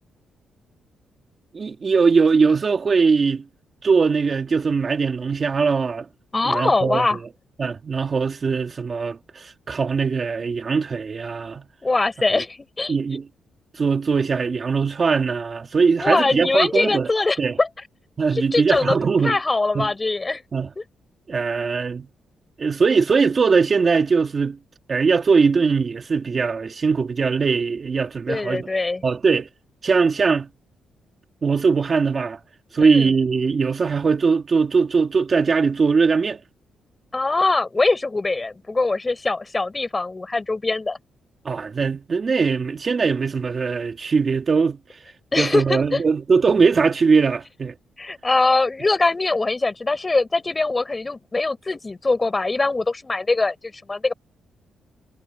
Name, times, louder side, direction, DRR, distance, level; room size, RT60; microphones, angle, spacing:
voice 1, 1.5-3.4 3.8-6.1 6.5-7.1 7.6-11.6 12.9-13.3 13.7-17.1 17.4-17.6 18.2-19.4 19.7-19.9 20.5-20.7 21.3-22.1 22.6-24.6 24.9-28.7 29.0-29.5 29.8-30.5 31.4-32.4 32.7-36.4 41.4-44.8 45.4-47.7, right 5 dB, 35° right, 2.4 m, -20 dB
voice 2, 6.3-7.2 11.8-12.9 16.0-17.7 18.3-19.0 19.2-20.4 20.8-20.9 28.3-29.0 32.8-33.1 37.1-41.0 45.3-46.0 48.0-54.1, left 3 dB, 20° left, 5.4 m, -22 dB
cardioid pair, 115°, 0 cm